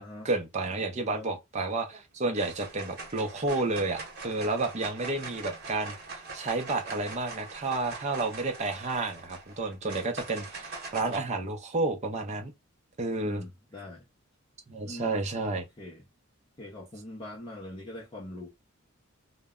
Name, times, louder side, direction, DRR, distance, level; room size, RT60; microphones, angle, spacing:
voice 1, 0.0-5.9 6.3-12.5 13.0-13.4 14.7-15.6, right 2 dB, 35° right, 0.5 m, -31 dB
sound 1, 1.6-2.0 2.3-11.2, right 3 dB, 50° right, 0.9 m, -42 dB
voice 2, 13.2-14.0 14.8-16.1 16.6-18.5, left 1 dB, 25° left, 0.5 m, -43 dB
2.1 x 2.0 x 3.5 m
head